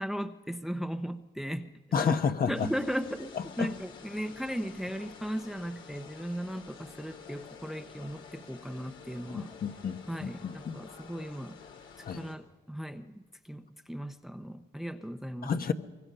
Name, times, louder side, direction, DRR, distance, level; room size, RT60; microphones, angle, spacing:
voice 1, 0.0-1.7 2.0-2.2 2.5-9.5 10.1-11.6 12.0-15.5, equal, ahead, 9 dB, 0.9 m, -37 dB
voice 2, 1.9-2.7 3.6-3.7 9.3-10.8 12.1-12.2 15.4-15.7, left 6 dB, 50° left, 7 dB, 1.2 m, -30 dB
sound 1, 2.5-12.4, left 6 dB, 80° left, 3.3 m, -50 dB
23.5 x 23.0 x 5.6 m, 1.2 s
cardioid pair, 90°, 20 cm